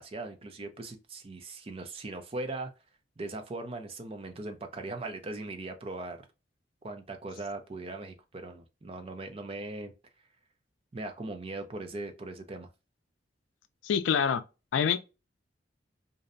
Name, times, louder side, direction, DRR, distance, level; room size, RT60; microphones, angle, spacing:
voice 1, 0.0-2.7 3.2-6.2 6.8-9.9 10.9-12.7, right 2 dB, 30° right, 0.4 m, -39 dB
voice 2, 13.8-14.4 14.7-15.0, left 7 dB, 85° left, 0.3 m, -25 dB
2.6 x 2.0 x 2.5 m
head